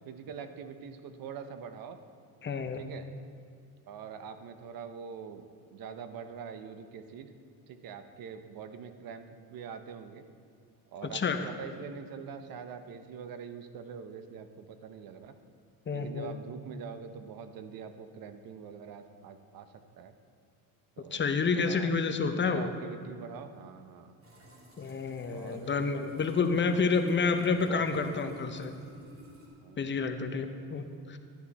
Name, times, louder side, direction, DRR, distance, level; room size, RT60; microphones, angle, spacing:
voice 1, 0.1-2.0 2.7-3.1 3.9-5.4 5.7-7.3 7.7-10.2 10.9-15.3 15.9-20.1 21.0-21.2 21.5-21.9 22.2-24.1 25.3-25.9 27.2-27.3 27.6-28.6 29.6-29.9, right 7 dB, 60° right, 9 dB, 0.9 m, -44 dB
voice 2, 2.4-2.8 11.1-11.4 15.9-16.3 21.1-22.7 24.8-28.7 29.8-31.2, left 4 dB, 30° left, 7 dB, 0.8 m, -29 dB
sound 1, 24.2-29.5, right 3 dB, 35° right, 2.6 m, -52 dB
11.5 x 10.5 x 4.2 m, 2.4 s
cardioid pair, 115°, 40 cm